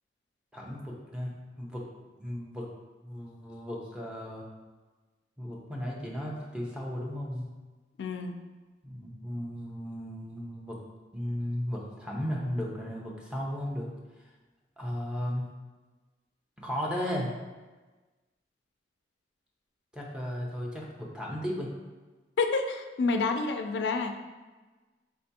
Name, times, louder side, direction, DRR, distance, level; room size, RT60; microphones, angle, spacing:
voice 1, 0.5-1.8 2.2-2.7 3.0-4.5 5.4-7.5 8.8-10.8 11.1-13.9 14.8-15.5 16.6-17.3 19.9-21.7, equal, 5° right, -3 dB, 0.6 m, -35 dB
voice 2, 8.0-8.3 22.4-24.2, left 4 dB, 75° left, 6 dB, 0.3 m, -28 dB
4.5 x 3.3 x 2.7 m, 1.3 s
head